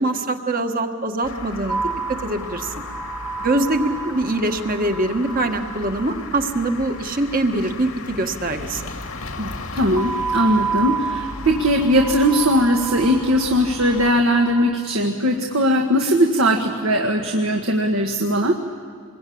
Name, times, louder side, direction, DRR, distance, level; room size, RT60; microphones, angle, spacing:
voice 1, 0.0-1.8 2.1-2.7 3.4-8.9, right 2 dB, 40° right, 5 dB, 1.6 m, -23 dB
sound 1, 1.2-14.1, left 3 dB, 85° left, 2.1 m, -36 dB
sound 2, 1.7-7.0 10.0-14.7, right 5 dB, ahead, 0.7 m, -30 dB
voice 2, 9.4-18.6, equal, 70° right, 2 dB, 1.7 m, -19 dB
26.5 x 22.0 x 8.7 m, 2.1 s
head